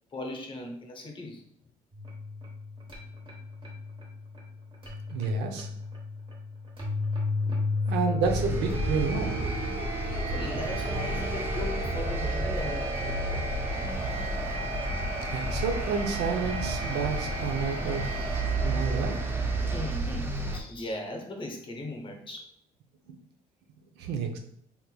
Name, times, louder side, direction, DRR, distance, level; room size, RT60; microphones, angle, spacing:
voice 1, 0.1-1.5 7.4-7.7 10.3-13.5 19.7-22.5, left 1 dB, 30° left, 3 dB, 0.7 m, -38 dB
sound 1, 1.9-20.0, left 1 dB, 30° right, 1.1 m, -34 dB
voice 2, 5.1-5.7 7.9-9.5 15.3-18.2 18.6-19.2 23.1-23.2 24.0-24.4, right 5 dB, 80° right, 4 dB, 0.6 m, -30 dB
sound 2, 8.2-20.6, right 2 dB, 15° right, 0.4 m, -32 dB
3.5 x 2.9 x 2.2 m, 0.67 s
cardioid pair, 110°, 17 cm